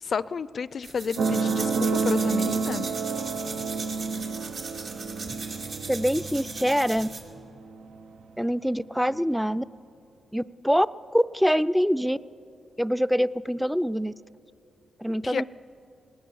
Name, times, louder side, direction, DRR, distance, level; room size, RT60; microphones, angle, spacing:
voice 1, 0.0-2.9 15.2-15.4, left 6 dB, 60° left, 19 dB, 0.4 m, -31 dB
sound 1, 0.8-7.3, right 3 dB, 75° right, 2.7 m, -38 dB
sound 2, 1.2-8.2 9.1-9.2, right 4 dB, 90° right, 0.7 m, -29 dB
voice 2, 5.9-7.1 8.4-9.6 10.3-10.9 11.1-12.2 12.8-14.1 15.0-15.4, equal, ahead, 16 dB, 0.4 m, -24 dB
20.5 x 18.5 x 7.1 m, 2.5 s
cardioid pair, 85°, 0 cm